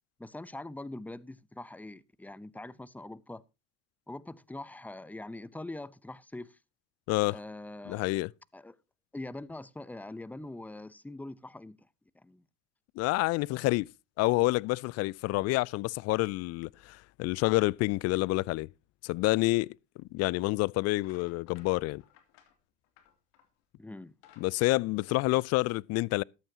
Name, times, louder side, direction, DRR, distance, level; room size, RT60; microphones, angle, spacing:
voice 1, 0.2-3.4 4.1-6.6 7.3-8.2 8.5-8.8 9.1-11.9 12.1-12.4 23.8-24.2, left 2 dB, 5° left, 0.7 m, -43 dB
voice 2, 7.1-7.4 7.9-8.3 13.0-13.9 14.2-18.7 19.0-19.7 20.1-22.0 24.4-26.2, left 21 dB, 50° left, 0.5 m, -28 dB
sound 1, 20.3-20.5 20.9-23.6 24.0-25.6, left 10 dB, 70° left, 2.9 m, -61 dB
14.0 x 12.0 x 2.8 m
hypercardioid pair, 70°, 34 cm